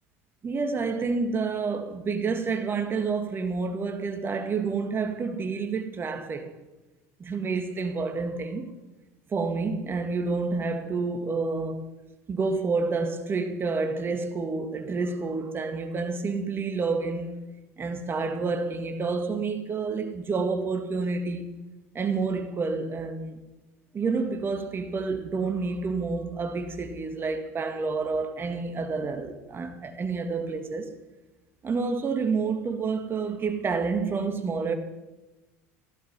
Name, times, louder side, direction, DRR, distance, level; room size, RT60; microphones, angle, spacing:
voice 1, 0.4-6.5 7.2-8.7 9.3-11.9 12.3-17.3 17.8-21.5 21.9-23.4 23.9-30.9 31.6-34.7, right 4 dB, 30° right, 2.0 m, -29 dB
15.0 x 12.0 x 5.6 m
hypercardioid pair, 90°, 8 cm